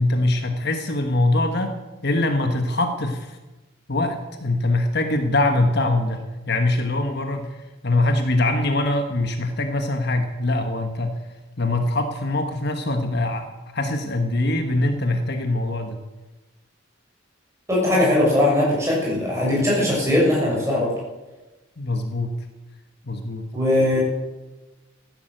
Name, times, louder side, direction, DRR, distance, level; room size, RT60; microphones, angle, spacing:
voice 1, 0.0-1.8 2.0-3.4 3.9-11.2 11.6-16.0 21.8-22.3 23.0-23.5, left 2 dB, 50° left, 6 dB, 1.3 m, -23 dB
voice 2, 17.7-20.9 23.5-24.0, left 1 dB, 15° right, -4 dB, 6.9 m, -20 dB
14.5 x 11.0 x 7.9 m, 1.1 s
head